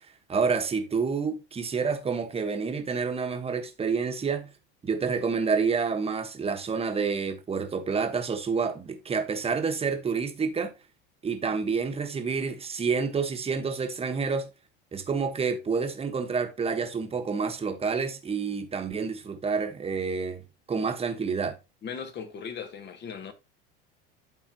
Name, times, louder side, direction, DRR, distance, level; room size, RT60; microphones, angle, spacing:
voice 1, 0.3-4.5 4.8-10.7 11.2-14.5 14.9-21.6, right 5 dB, 20° right, 1.3 m, -28 dB
voice 2, 21.8-23.3, left 6 dB, 35° left, 1.4 m, -38 dB
12.0 x 4.0 x 2.9 m
supercardioid pair, 115°, 30 cm